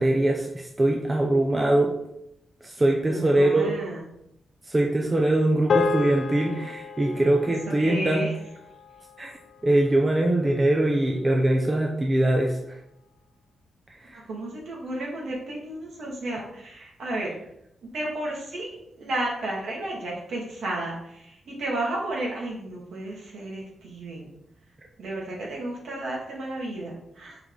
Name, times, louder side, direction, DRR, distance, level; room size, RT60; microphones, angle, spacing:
voice 1, 0.0-1.9 2.6-3.8 4.6-8.3 9.2-9.3 9.6-12.8 14.0-14.2, right 1 dB, 20° right, 0 dB, 0.6 m, -22 dB
voice 2, 3.0-4.0 7.7-8.3 14.1-17.3 17.8-24.3 25.0-27.4, right 1 dB, 75° right, -3 dB, 2.0 m, -32 dB
sound 1, 5.7-10.2, left 4 dB, 55° left, 0.4 m, -31 dB
5.2 x 4.8 x 3.8 m, 0.79 s
wide cardioid pair, 135°, 0 cm